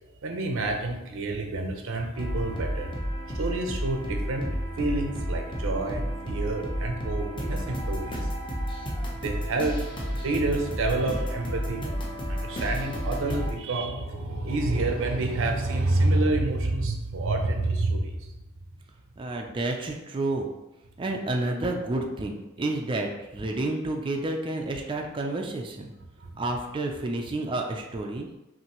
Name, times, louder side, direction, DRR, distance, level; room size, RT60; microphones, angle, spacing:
voice 1, 0.2-2.9 3.3-4.5 4.8-8.3 9.2-9.8 10.2-11.9 12.3-18.4 26.2-26.4, right 2 dB, 65° right, 3 dB, 0.6 m, -28 dB
sound 1, 2.1-13.5, equal, 25° left, 0.7 m, -31 dB
voice 2, 19.2-20.5 21.0-25.9 26.4-28.3, right 2 dB, 25° right, 1 dB, 0.4 m, -30 dB
5.6 x 2.6 x 3.0 m, 1.0 s
head